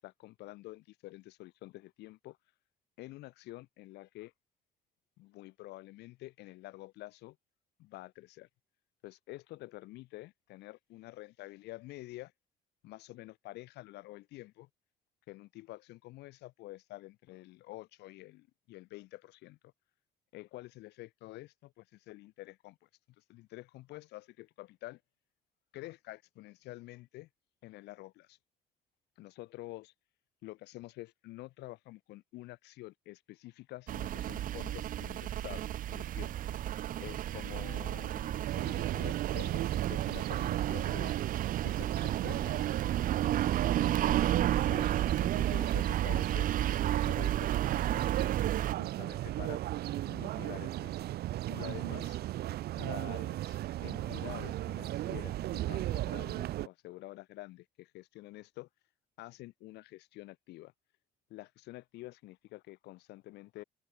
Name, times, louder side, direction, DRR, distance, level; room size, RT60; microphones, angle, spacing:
voice 1, 0.0-2.4 3.0-4.3 5.2-7.4 7.8-8.5 9.0-12.3 12.8-14.7 15.3-19.6 20.3-22.9 23.2-25.0 25.7-27.3 27.6-28.4 29.2-29.9 30.4-36.3 37.0-41.1 41.6-42.7 43.6-46.5 47.0-48.4 48.8-49.6 50.1-51.0 51.5-52.2 52.7-58.7 59.2-60.7 61.3-63.6, left 18 dB, 85° left, 3.5 m, -48 dB
sound 1, 33.9-48.7, right 12 dB, 55° right, 0.6 m, -32 dB
sound 2, 38.4-56.7, right 14 dB, 70° right, 1.5 m, -36 dB
cardioid pair, 110°, 17 cm